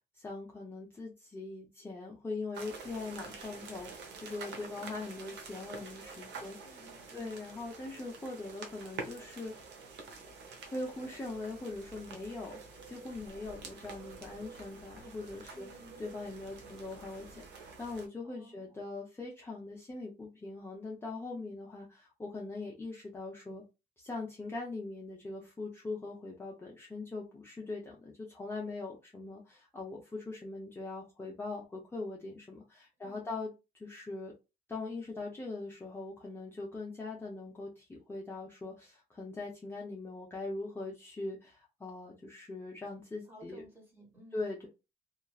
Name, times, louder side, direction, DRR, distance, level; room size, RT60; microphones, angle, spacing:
voice 1, 0.1-6.7 7.1-9.5 10.7-12.6 12.9-15.7 16.0-23.6 24.0-33.5 33.8-34.3 34.7-43.6 44.3-44.7, left 3 dB, 15° left, 0.6 m, -41 dB
sound 1, 2.5-18.1, right 4 dB, 80° right, 0.7 m, -48 dB
voice 2, 6.2-7.4 15.5-16.1 18.3-18.8 21.3-21.5 33.0-33.4 43.3-44.5, equal, 10° right, 1.2 m, -57 dB
2.9 x 2.4 x 2.2 m
cardioid pair, 130°, 18 cm